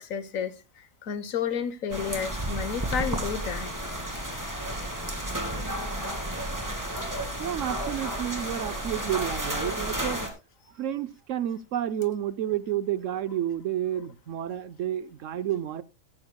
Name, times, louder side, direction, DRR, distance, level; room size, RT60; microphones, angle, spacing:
voice 1, 0.0-3.7 8.4-8.5, left 7 dB, 75° left, 1.4 m, -32 dB
sound 1, 1.9-10.3, right 1 dB, 15° right, 2.3 m, -32 dB
voice 2, 7.4-10.2 10.7-15.8, right 11 dB, 70° right, 1.1 m, -30 dB
16.0 x 13.0 x 2.2 m
omnidirectional pair, 1.4 m